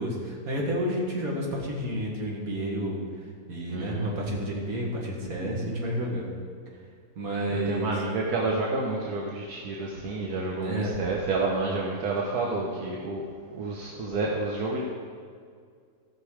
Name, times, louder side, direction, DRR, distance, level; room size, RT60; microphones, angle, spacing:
voice 1, 0.0-3.0 3.5-6.3 7.2-7.9 10.6-10.9, equal, 65° right, -2 dB, 2.4 m, -30 dB
voice 2, 3.7-4.1 7.5-13.2 13.5-14.8, right 3 dB, 85° right, -2 dB, 1.6 m, -29 dB
16.0 x 6.2 x 4.9 m, 2.1 s
omnidirectional pair, 1.6 m